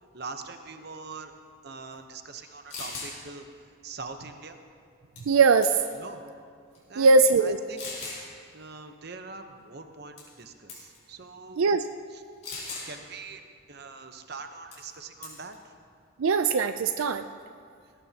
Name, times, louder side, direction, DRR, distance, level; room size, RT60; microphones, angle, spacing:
voice 1, 0.1-1.3 1.6-3.5 3.8-4.6 6.0-6.2 6.9-7.8 8.5-11.6 12.1-12.2 12.9-15.7, right 4 dB, 50° right, 6 dB, 0.9 m, -43 dB
sound 1, 2.4-2.5 2.7-3.1 5.2-5.4 5.6-6.0 6.7-6.8 7.8-8.2 10.2-10.4 10.7-11.0 12.4-12.9 14.7-14.9 15.2-15.5, left 3 dB, 35° left, 4.7 m, -38 dB
voice 2, 5.3-5.7 7.0-7.6 11.6-11.8 16.2-17.2, right 4 dB, 90° right, 9 dB, 0.4 m, -20 dB
19.0 x 18.0 x 2.9 m, 2.2 s
head